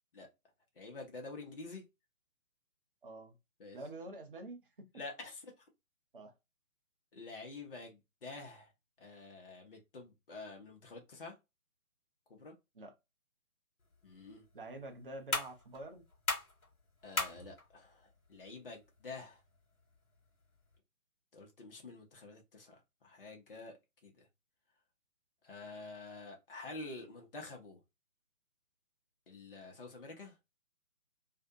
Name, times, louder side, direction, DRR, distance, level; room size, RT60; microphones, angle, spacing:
voice 1, 0.8-1.8 3.6-3.8 4.9-5.5 7.1-8.7 9.0-11.4 12.3-12.5 14.0-14.5 17.0-19.4 21.3-22.8 23.0-23.8 24.0-24.3 25.4-27.8 29.3-30.3, left 3 dB, 40° left, 0.7 m, -48 dB
voice 2, 3.0-3.4 3.7-4.6 6.1-6.3 12.7-12.9 14.5-16.0, right 2 dB, 40° right, 0.4 m, -47 dB
sound 1, 13.8-20.8, left 2 dB, 75° left, 1.2 m, -42 dB
2.5 x 2.0 x 2.4 m
figure-of-eight pair, 140°, 43 cm